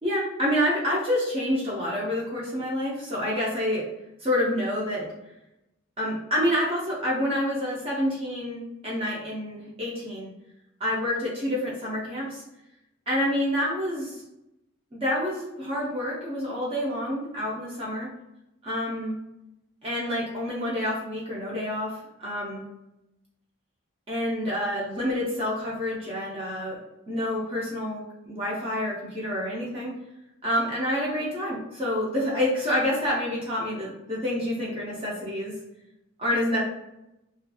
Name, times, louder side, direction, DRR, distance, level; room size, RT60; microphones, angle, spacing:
voice 1, 0.0-3.8 4.2-5.1 6.0-10.3 10.8-12.4 13.1-14.1 14.9-18.1 18.6-19.2 19.8-21.9 22.2-22.6 24.1-26.8 27.1-29.9 30.4-35.5 36.2-36.6, left 1 dB, 30° right, -6 dB, 0.6 m, -28 dB
2.7 x 2.5 x 2.3 m, 0.88 s
head